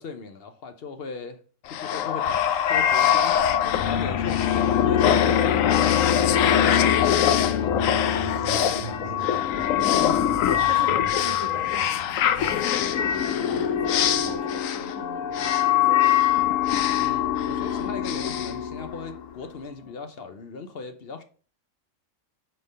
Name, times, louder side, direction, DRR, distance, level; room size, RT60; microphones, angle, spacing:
voice 1, 0.0-1.4 1.7-7.8 17.0-21.2, left 4 dB, 55° left, 0.8 m, -38 dB
sound 1, 1.7-19.3, left 10 dB, 85° left, 1.0 m, -22 dB
sound 2, 3.0-14.4, right 2 dB, 65° right, 2.5 m, -41 dB
voice 2, 9.1-10.3 10.6-16.2, right 1 dB, 85° right, 2.5 m, -40 dB
5.7 x 3.4 x 5.3 m
omnidirectional pair, 1.3 m